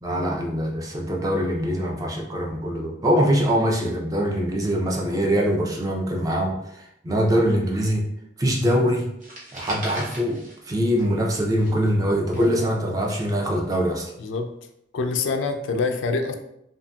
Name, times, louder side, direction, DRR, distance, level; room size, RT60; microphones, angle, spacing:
voice 1, 0.0-8.0 8.4-9.1 9.5-14.1, equal, 20° right, 0 dB, 0.4 m, -23 dB
sound 1, 9.2-11.3 11.5-13.7, right 1 dB, 45° right, 0.8 m, -38 dB
voice 2, 12.3-13.0 14.2-14.5 14.9-16.3, left 4 dB, 85° left, 6 dB, 0.3 m, -26 dB
2.6 x 2.6 x 2.2 m, 0.79 s
head